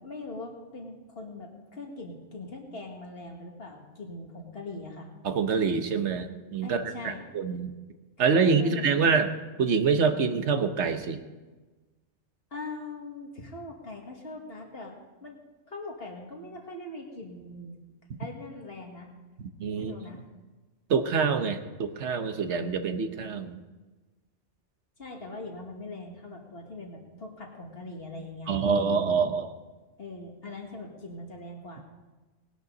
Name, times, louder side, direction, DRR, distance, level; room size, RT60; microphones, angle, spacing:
voice 1, 0.0-5.1 6.6-7.2 8.4-9.2 12.5-15.4 15.7-17.8 18.2-19.1 19.8-20.2 25.0-28.5 30.0-31.8, left 2 dB, 60° left, 0 dB, 2.3 m, -41 dB
voice 2, 5.2-7.7 8.2-9.3 9.6-11.2 19.6-19.9 20.9-23.6 28.5-29.5, right 5 dB, 90° right, 8 dB, 1.3 m, -26 dB
19.0 x 11.5 x 4.0 m, 1.2 s
omnidirectional pair, 1.1 m